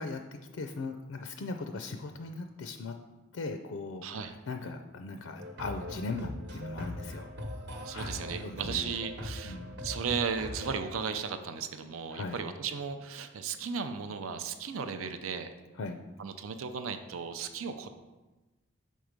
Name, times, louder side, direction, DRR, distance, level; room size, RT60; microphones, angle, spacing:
voice 1, 0.0-3.0 3.3-7.3 7.9-8.9 9.4-9.8 12.1-12.4 15.8-16.0, left 3 dB, 80° left, 6 dB, 0.4 m, -39 dB
voice 2, 4.0-4.3 7.8-15.5 16.2-17.9, right 6 dB, 85° right, 8 dB, 0.5 m, -35 dB
sound 1, 5.4-10.9, left 1 dB, 55° right, 1.0 m, -41 dB
6.3 x 4.6 x 5.1 m, 1.1 s
head